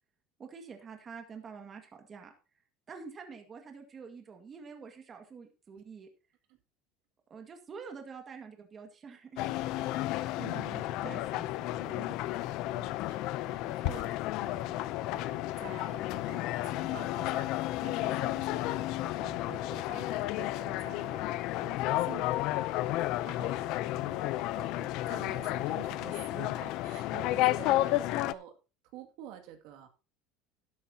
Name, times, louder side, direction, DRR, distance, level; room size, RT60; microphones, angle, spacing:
voice 1, 0.4-2.3 2.9-6.1 7.3-10.2 10.5-12.2, right 5 dB, 25° right, 4 dB, 1.9 m, -47 dB
sound 1, 9.4-28.3, left 16 dB, 55° left, 0.6 m, -32 dB
voice 2, 10.4-11.0 12.7-14.9 15.1-28.5 28.9-29.9, right 11 dB, 65° right, 5 dB, 2.3 m, -49 dB
12.0 x 12.0 x 2.9 m, 0.32 s
cardioid pair, 145°, 0 cm